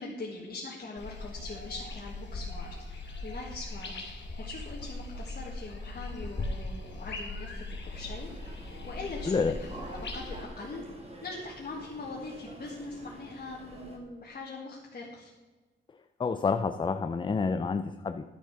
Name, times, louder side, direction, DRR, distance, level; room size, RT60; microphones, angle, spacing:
voice 1, 0.0-8.3 8.8-10.8 11.2-15.3, left 3 dB, 45° left, -4 dB, 1.8 m, -42 dB
sound 1, 1.0-10.4, left 2 dB, 60° left, 2.5 m, -39 dB
sound 2, 7.9-14.0, right 1 dB, 30° right, 2.0 m, -47 dB
voice 2, 16.2-18.2, left 5 dB, 25° left, 9 dB, 0.4 m, -28 dB
11.5 x 6.9 x 5.9 m, 1.3 s
wide cardioid pair, 125°, 20 cm